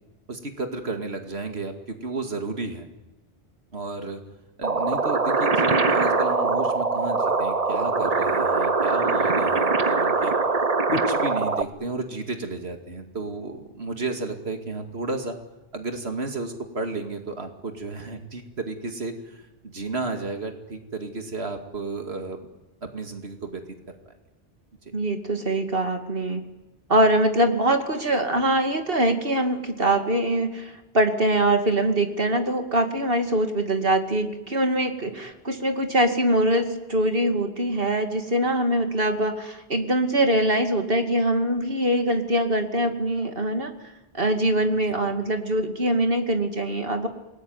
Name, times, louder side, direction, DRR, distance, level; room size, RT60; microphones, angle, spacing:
voice 1, 0.3-2.9 3.7-4.2 4.6-10.3 10.9-15.4 15.7-22.5 22.8-23.6 24.8-24.9 44.6-45.1, right 3 dB, 90° right, 5 dB, 2.5 m, -32 dB
sound 1, 4.6-11.6, right 3 dB, 40° right, 1.3 m, -22 dB
voice 2, 24.9-26.4 26.9-43.7 44.1-47.1, right 1 dB, 65° right, 6 dB, 2.6 m, -23 dB
28.5 x 19.5 x 9.5 m, 1.1 s
omnidirectional pair, 1.0 m